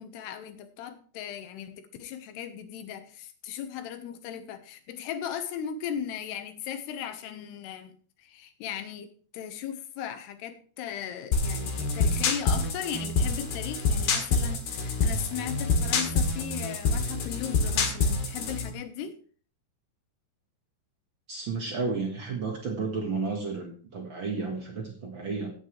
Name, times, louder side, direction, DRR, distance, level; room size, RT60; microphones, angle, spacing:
voice 1, 0.0-7.9 8.2-19.2, left 9 dB, 85° left, 3.1 m, -37 dB
sound 1, 11.3-18.7, left 4 dB, 70° left, 3.6 m, -26 dB
voice 2, 21.3-25.5, right 4 dB, 70° right, 1.1 m, -32 dB
16.5 x 8.0 x 3.2 m
omnidirectional pair, 4.8 m